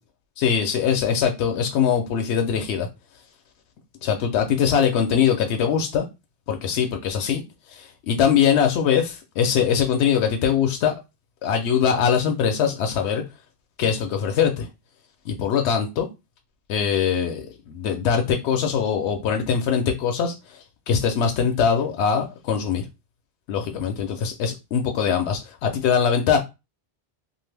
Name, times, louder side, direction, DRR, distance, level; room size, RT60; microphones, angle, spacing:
voice 1, 0.4-2.9 4.0-6.1 6.5-7.4 7.7-10.9 11.4-13.2 13.8-14.7 15.3-16.1 16.7-20.6 20.9-22.8 23.5-26.4, left 7 dB, 80° left, 0.8 m, -22 dB
2.6 x 2.4 x 3.2 m
omnidirectional pair, 1.1 m